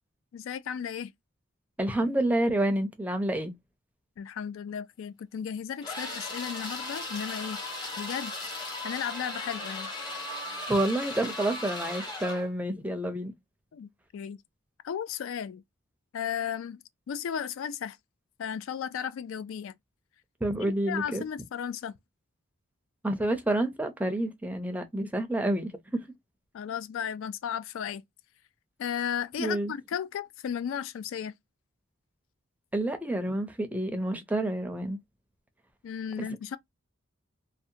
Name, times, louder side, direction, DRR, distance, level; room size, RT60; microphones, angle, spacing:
voice 1, 0.3-1.1 4.2-7.6 8.0-8.3 8.8-9.9 13.7-14.4 14.8-15.6 16.1-16.8 17.1-18.0 18.4-19.7 20.6-22.0 26.5-28.0 28.8-31.3 35.8-36.6, left 8 dB, 70° left, 0.3 m, -35 dB
voice 2, 1.8-3.5 10.7-13.3 20.4-21.2 23.0-26.0 29.4-29.7 32.7-35.0 36.2-36.3, right 1 dB, 10° right, 0.5 m, -29 dB
sound 1, 5.8-12.5, left 2 dB, 20° left, 0.9 m, -37 dB
2.7 x 2.1 x 2.6 m
head